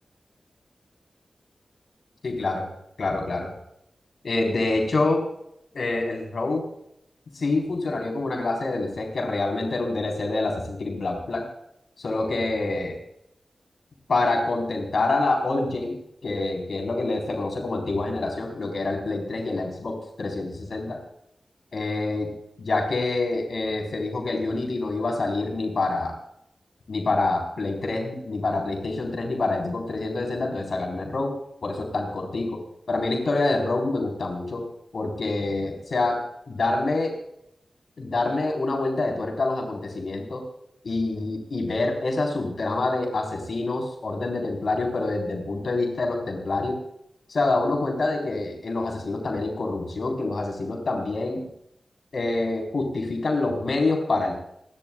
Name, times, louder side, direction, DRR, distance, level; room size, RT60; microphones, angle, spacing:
voice 1, 2.2-2.7 3.0-3.5 4.2-5.2 5.7-6.6 7.3-11.4 12.0-13.0 14.1-21.0 21.7-22.3 22.6-26.1 26.9-31.3 31.6-32.6 32.9-34.6 34.9-37.1 38.0-40.4 40.8-46.8 47.3-51.4 52.1-54.4, left 2 dB, 75° left, 1 dB, 4.2 m, -26 dB
28.5 x 12.5 x 2.4 m, 0.76 s
wide cardioid pair, 75°, 0 cm